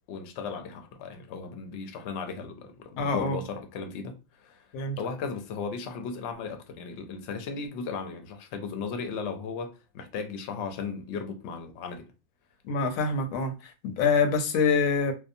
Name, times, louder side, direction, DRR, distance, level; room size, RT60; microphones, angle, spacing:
voice 1, 0.1-4.6 5.0-12.1, left 5 dB, 65° left, 0.8 m, -36 dB
voice 2, 3.0-3.4 4.7-5.0 12.7-13.5 13.8-15.1, left 4 dB, 85° left, 1.0 m, -25 dB
2.7 x 2.1 x 2.6 m
omnidirectional pair, 1.4 m